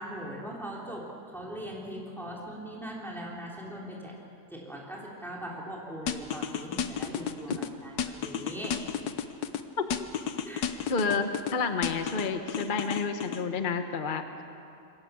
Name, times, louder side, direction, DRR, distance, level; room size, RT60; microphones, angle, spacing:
voice 1, 0.0-4.1 4.5-8.8 10.4-10.8, equal, ahead, -4 dB, 3.5 m, -40 dB
sound 1, 6.1-7.7 8.0-9.6 9.9-11.5 11.8-13.4, left 8 dB, 85° left, 1.5 m, -32 dB
voice 2, 10.9-14.4, left 4 dB, 35° left, 6 dB, 1.1 m, -30 dB
27.0 x 23.0 x 7.0 m, 2.7 s
omnidirectional pair, 1.7 m